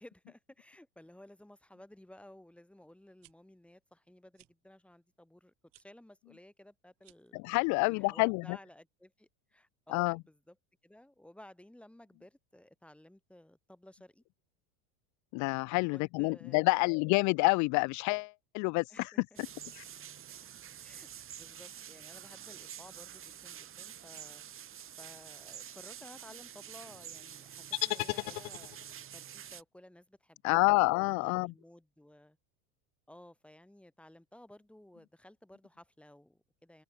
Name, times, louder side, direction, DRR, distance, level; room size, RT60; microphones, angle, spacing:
voice 1, 0.0-7.4 7.8-10.6 10.8-14.2 15.4-15.5 15.9-16.8 18.9-19.4 20.8-24.5 25.0-28.7 29.1-30.9 31.2-32.4 33.1-36.8, left 1 dB, 5° left, 5.4 m, -56 dB
sound 1, 3.2-3.3 4.3-4.5 5.7-5.9 7.0-7.4, right 19 dB, 50° right, 6.5 m, -62 dB
voice 2, 7.4-8.6 9.9-10.2 15.3-19.1 19.7-19.8 30.4-31.5, left 30 dB, 45° left, 0.4 m, -28 dB
sound 2, 19.4-29.6, right 10 dB, 30° right, 3.3 m, -48 dB
sound 3, 27.7-29.0, left 30 dB, 70° left, 0.9 m, -35 dB
supercardioid pair, 135°, 42 cm